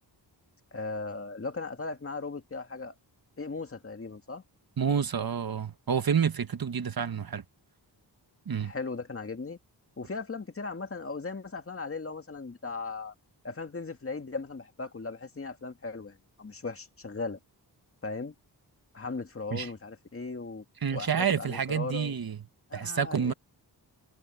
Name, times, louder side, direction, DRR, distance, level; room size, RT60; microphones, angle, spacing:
voice 1, 0.7-2.9 3.4-4.4 8.6-9.6 10.0-13.1 13.4-17.4 18.0-18.3 18.9-20.6 20.9-22.2 22.7-23.3, left 4 dB, 30° left, 2.0 m, -37 dB
voice 2, 4.8-7.4 8.5-8.7 19.5-19.7 20.8-22.4 22.7-23.3, right 7 dB, 55° right, 1.5 m, -29 dB
wide cardioid pair, 105°, 42 cm